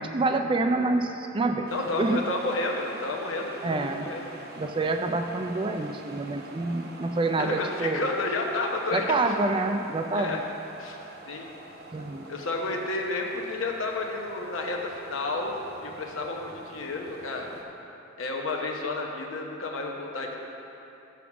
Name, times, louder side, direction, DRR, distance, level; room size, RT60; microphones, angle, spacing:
voice 1, 0.0-1.7 1.9-2.2 3.6-4.1 4.6-8.0 8.9-10.4 11.9-12.3, right 2 dB, 25° right, 5 dB, 0.3 m, -27 dB
voice 2, 1.7-4.2 7.4-9.0 10.1-10.4 10.8-11.0 11.3-11.5 12.3-15.6 15.8-17.5 18.2-20.4, left 2 dB, 75° left, 1 dB, 0.9 m, -31 dB
sound 1, 1.7-17.6, right 2 dB, 50° right, 0.8 m, -46 dB
7.0 x 6.0 x 6.0 m, 2.9 s
head